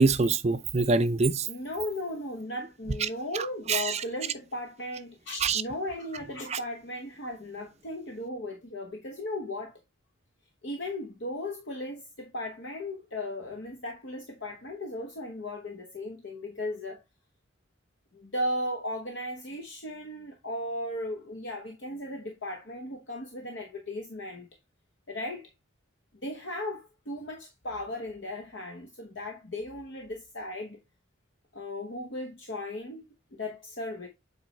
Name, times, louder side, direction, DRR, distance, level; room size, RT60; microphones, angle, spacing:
voice 1, 0.0-1.5 3.0-3.1 3.3-4.0 5.4-5.6 6.5-6.6, right 4 dB, 30° right, 0.5 m, -25 dB
voice 2, 1.5-9.7 10.6-17.0 18.1-24.5 25.1-25.5 26.2-30.8 31.5-34.1, left 1 dB, 60° left, 1.0 m, -36 dB
7.7 x 4.1 x 3.2 m
head